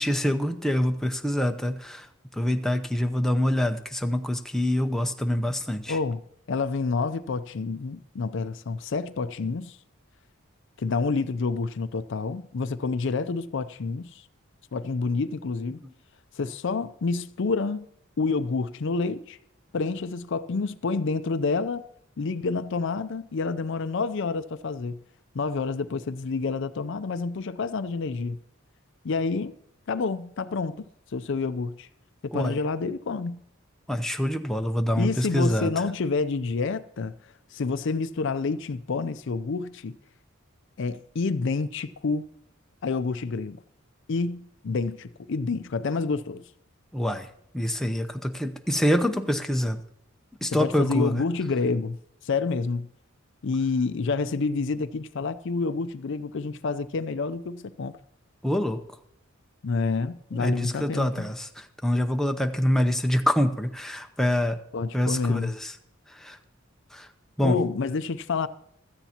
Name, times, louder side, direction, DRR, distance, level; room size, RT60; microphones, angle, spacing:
voice 1, 0.0-2.1 2.3-6.0 32.3-32.6 33.9-35.7 46.9-47.3 47.5-49.8 50.4-51.2 58.4-58.8 60.3-64.6 64.9-65.7 66.2-66.4 66.9-67.1 67.4-67.6, left 1 dB, ahead, 0.6 m, -25 dB
voice 2, 5.9-6.2 6.5-9.8 10.8-14.2 14.7-15.8 16.4-17.8 18.2-19.4 19.7-21.8 22.2-25.0 25.3-28.4 29.0-29.5 29.9-30.9 31.1-31.9 32.2-33.4 35.0-37.1 37.5-40.0 40.8-42.3 42.8-43.6 44.1-46.4 50.5-52.0 52.2-52.9 53.4-57.9 59.6-61.3 64.7-65.6 67.4-68.5, left 4 dB, 60° left, 0.5 m, -28 dB
16.0 x 13.0 x 2.9 m
head